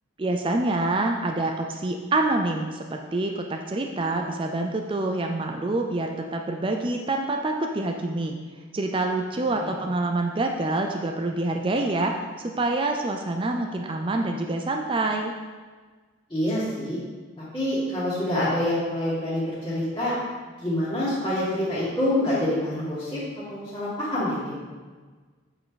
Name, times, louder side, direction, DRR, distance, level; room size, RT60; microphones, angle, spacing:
voice 1, 0.2-8.4 8.7-12.1 12.4-15.3, right 2 dB, 25° right, 3 dB, 0.4 m, -26 dB
voice 2, 16.3-17.0 17.5-20.1 20.6-23.2 23.5-24.6, left 1 dB, 20° left, -15 dB, 2.2 m, -26 dB
8.6 x 5.3 x 4.0 m, 1.4 s
head